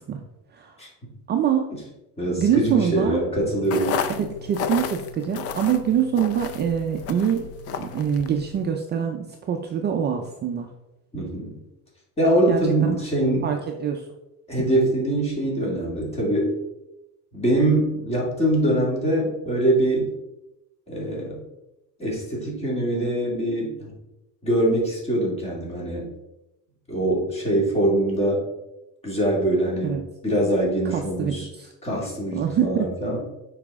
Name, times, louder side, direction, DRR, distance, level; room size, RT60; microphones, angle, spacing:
voice 1, 1.3-1.7 2.4-3.2 4.1-10.7 12.5-13.0 13.4-14.1 29.8-30.0 30.9-31.7 32.3-32.9, right 8 dB, 30° right, 3 dB, 0.5 m, -24 dB
voice 2, 2.2-4.0 11.1-11.5 12.2-13.5 14.5-16.5 17.3-20.1 20.9-21.4 22.0-23.9 24.4-26.1 26.9-28.4 29.0-31.5 31.8-33.2, right 1 dB, 20° left, -3 dB, 2.1 m, -23 dB
sound 1, 3.6-8.7, left 7 dB, 45° left, 0.5 m, -32 dB
6.8 x 4.9 x 3.6 m, 0.94 s
cardioid pair, 155°, 34 cm